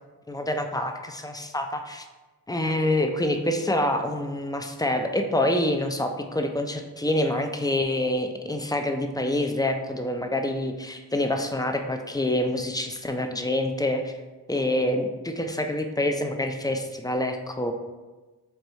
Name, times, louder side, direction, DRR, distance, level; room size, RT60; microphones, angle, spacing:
voice 1, 0.3-2.1 2.5-14.1 14.5-17.7, left 1 dB, 10° left, 5 dB, 0.3 m, -26 dB
4.5 x 2.6 x 3.1 m, 1.2 s
cardioid pair, 55°, 40 cm